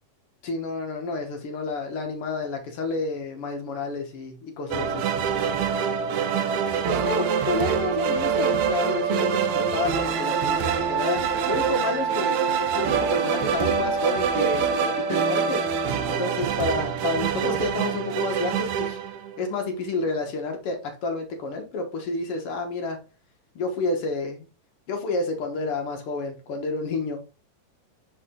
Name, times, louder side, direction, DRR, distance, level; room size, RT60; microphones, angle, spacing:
voice 1, 0.4-5.1 6.9-11.2 11.5-15.6 16.1-19.0 19.4-23.0 23.5-24.5 24.9-27.2, left 3 dB, 60° left, 3 dB, 1.6 m, -30 dB
sound 1, 4.7-19.7, right 6 dB, 75° right, 1.7 m, -25 dB
5.8 x 4.9 x 3.6 m, 0.33 s
omnidirectional pair, 3.9 m